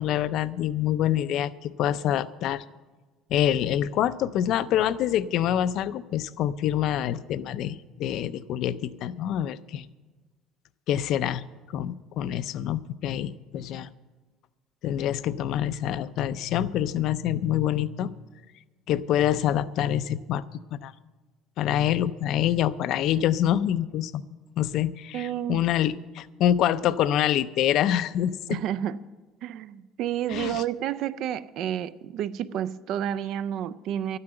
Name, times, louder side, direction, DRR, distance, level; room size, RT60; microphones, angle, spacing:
voice 1, 0.0-2.6 3.3-9.9 10.9-11.4 11.7-13.9 14.8-18.1 18.9-20.4 20.7-20.9 21.6-24.2 24.6-28.6 30.3-30.6, left 11 dB, 45° left, 0.4 m, -26 dB
voice 2, 25.1-25.7 28.5-29.0 29.4-34.2, right 10 dB, 45° right, 0.3 m, -30 dB
12.5 x 9.6 x 7.7 m
cardioid pair, 180°, 0 cm